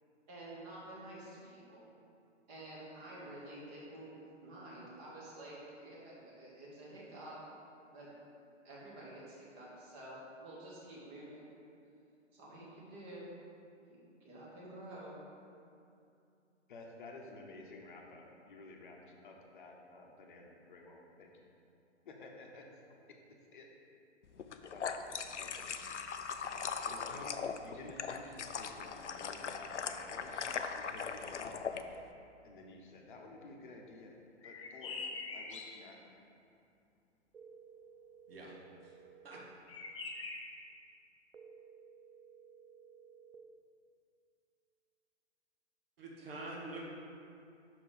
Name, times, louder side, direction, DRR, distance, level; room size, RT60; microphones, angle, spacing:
voice 1, 0.3-1.8 2.5-4.1 4.4-7.4 7.9-8.1 8.6-11.5 12.3-13.3 13.9-15.1, right 1 dB, 25° right, -6 dB, 1.6 m, -50 dB
voice 2, 16.7-21.5 22.0-22.6 23.5-23.7 24.7-25.1 25.4-31.9 32.4-34.2 34.4-36.1, left 2 dB, 45° left, 1 dB, 1.0 m, -53 dB
sound 1, 24.4-31.8, left 6 dB, 75° left, 0.5 m, -40 dB
sound 2, 34.4-35.9 39.7-40.6, left 4 dB, 25° left, 0.5 m, -43 dB
sound 3, 37.3-39.4 41.3-43.4, right 6 dB, 75° right, 0.6 m, -57 dB
voice 3, 46.0-46.8, right 2 dB, 55° right, -3 dB, 1.4 m, -45 dB
6.0 x 4.6 x 5.0 m, 2.6 s
figure-of-eight pair, 125°, 36 cm